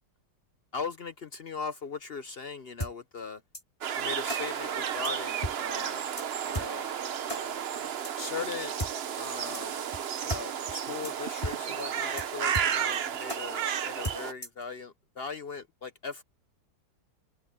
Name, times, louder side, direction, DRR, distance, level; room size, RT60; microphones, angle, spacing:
voice 1, 0.7-3.4 4.0-6.1 6.5-6.9 7.3-7.6 8.2-8.7 9.2-9.8 10.2-16.2, left 5 dB, 60° left, 0.6 m, -39 dB
sound 1, 2.8-2.9 3.5-3.6 4.3-4.4 5.0-5.1 5.4-5.5 5.8-5.9 6.2-6.3 6.5-6.7 7.3-7.4 8.0-8.1 8.8-8.9 9.5-9.6 9.9-10.0 10.3-10.4 10.7-10.8 11.0-11.1 11.4-11.5 11.8-11.9 12.2-12.3 12.5-13.0 13.3-13.4 14.0-14.6, equal, 15° left, 4.2 m, -34 dB
sound 2, 3.8-14.3, right 8 dB, 70° right, 0.5 m, -33 dB
omnidirectional pair, 2.1 m